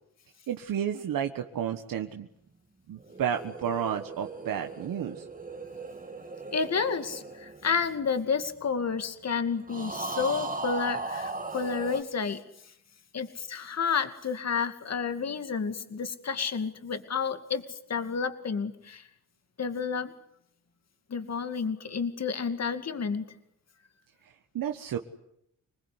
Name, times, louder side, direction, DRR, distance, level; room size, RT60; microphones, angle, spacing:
voice 1, 0.5-2.3 2.9-5.3 24.5-25.0, right 9 dB, 80° right, 5 dB, 1.5 m, -31 dB
sound 1, 3.0-8.6 9.7-12.0, right 3 dB, 25° right, 2.6 m, -38 dB
voice 2, 6.5-12.4 13.1-19.0 19.6-20.1 21.1-23.2, left 6 dB, 50° left, 9 dB, 2.4 m, -30 dB
26.5 x 20.0 x 9.8 m, 0.77 s
cardioid pair, 85°, 33 cm